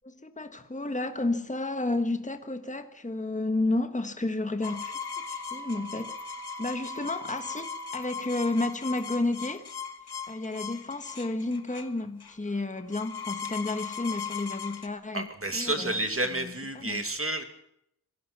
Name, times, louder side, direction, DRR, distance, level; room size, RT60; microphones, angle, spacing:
voice 1, 0.0-5.0 5.3-6.2 6.6-9.7 10.3-15.3 15.5-16.0 16.3-17.0, left 2 dB, 20° left, 1.4 m, -31 dB
sound 1, 4.6-14.9, left 7 dB, 80° left, 1.5 m, -39 dB
Wind instrument woodwind instrument, 4.6-8.2, right 3 dB, 10° right, 1.2 m, -43 dB
voice 2, 15.1-17.4, right 1 dB, 35° right, 2.4 m, -30 dB
25.5 x 17.5 x 6.1 m
wide cardioid pair, 75°, 38 cm